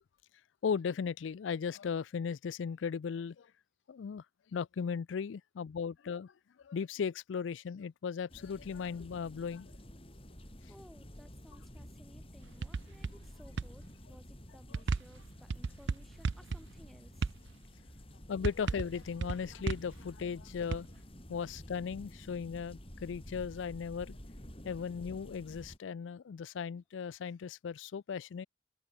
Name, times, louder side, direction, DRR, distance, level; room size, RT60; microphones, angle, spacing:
voice 1, 0.6-3.5 3.9-4.2 4.5-6.3 6.6-9.7 18.3-20.9 21.3-24.2 24.6-28.5, left 6 dB, 85° left, 0.4 m, -37 dB
sound 1, 8.3-25.8, equal, 30° left, 4.6 m, -51 dB
voice 2, 10.7-17.2, equal, ahead, 3.8 m, -59 dB
sound 2, 12.4-13.3 13.6-13.7 14.7-16.9 17.2-17.5 18.4-20.0 20.7-20.8, right 4 dB, 75° right, 0.5 m, -33 dB
head